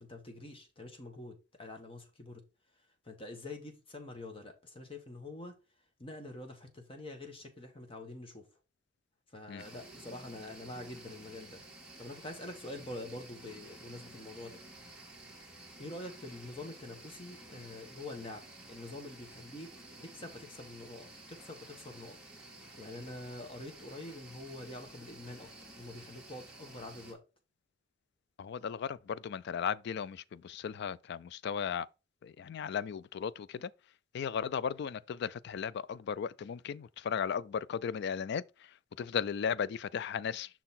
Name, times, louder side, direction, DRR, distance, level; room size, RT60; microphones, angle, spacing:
voice 1, 0.0-2.4 3.0-5.6 6.0-8.4 9.3-11.6 12.0-14.6 15.8-18.4 18.7-19.7 20.0-22.2 22.8-25.5 25.8-27.2, left 2 dB, 30° left, 1.4 m, -46 dB
sound 1, 9.6-27.1, right 2 dB, 5° right, 1.5 m, -52 dB
voice 2, 28.4-31.9 32.2-33.7 34.1-38.4 39.0-40.6, left 7 dB, 60° left, 0.3 m, -36 dB
6.1 x 3.9 x 4.2 m
head